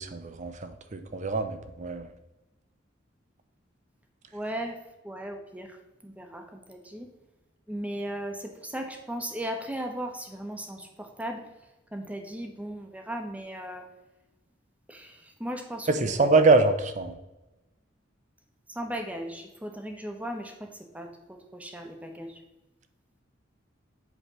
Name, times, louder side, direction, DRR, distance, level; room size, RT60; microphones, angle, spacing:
voice 1, 0.0-2.1 15.9-17.2, right 3 dB, 40° right, 9 dB, 0.6 m, -24 dB
voice 2, 4.3-4.8 5.0-5.8 6.0-7.1 7.7-11.4 11.9-13.8 14.9-16.5 18.7-20.7 20.9-22.4, right 1 dB, 5° right, 3 dB, 0.9 m, -37 dB
8.1 x 3.3 x 6.0 m, 1.0 s
head